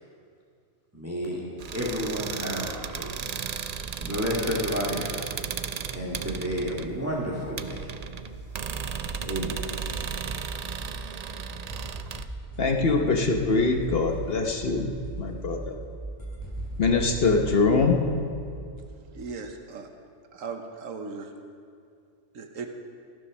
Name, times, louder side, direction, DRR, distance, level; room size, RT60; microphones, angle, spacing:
voice 1, 0.9-1.4 1.7-3.2 4.0-5.2 5.9-7.8 9.2-9.6, equal, 10° right, -5 dB, 2.0 m, -30 dB
sound 1, 1.6-12.2, right 7 dB, 60° right, 0.4 m, -35 dB
sound 2, 6.5-19.6, right 3 dB, 30° right, 0.8 m, -42 dB
sound 3, 8.7-11.4 11.7-18.9, equal, 15° left, 3.1 m, -44 dB
voice 2, 12.6-15.7 16.8-18.0, left 3 dB, 50° left, 3 dB, 1.2 m, -23 dB
voice 3, 19.1-19.9 20.3-21.3 22.3-22.7, right 4 dB, 85° right, 5 dB, 1.4 m, -37 dB
15.5 x 10.5 x 6.3 m, 2.3 s
omnidirectional pair, 1.3 m